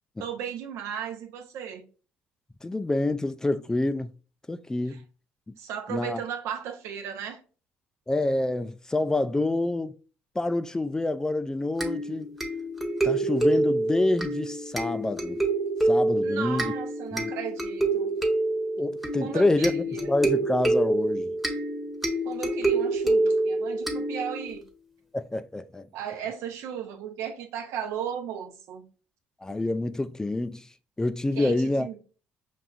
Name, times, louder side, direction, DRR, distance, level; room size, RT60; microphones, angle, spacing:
voice 1, 0.2-1.8 4.9-5.0 5.6-7.4 16.2-18.1 19.2-20.1 22.2-24.6 25.9-28.9 31.4-32.0, right 8 dB, 80° right, 0.8 m, -35 dB
voice 2, 2.6-4.1 4.5-5.0 5.9-6.2 8.1-9.9 10.4-12.3 13.0-15.4 15.8-16.7 17.1-17.3 18.8-21.4 25.1-25.9 29.4-30.7 31.0-32.0, left 2 dB, 15° left, 0.3 m, -27 dB
sound 1, 11.8-24.6, right 2 dB, 5° right, 1.0 m, -27 dB
5.6 x 2.5 x 2.4 m
supercardioid pair, 75°, 5 cm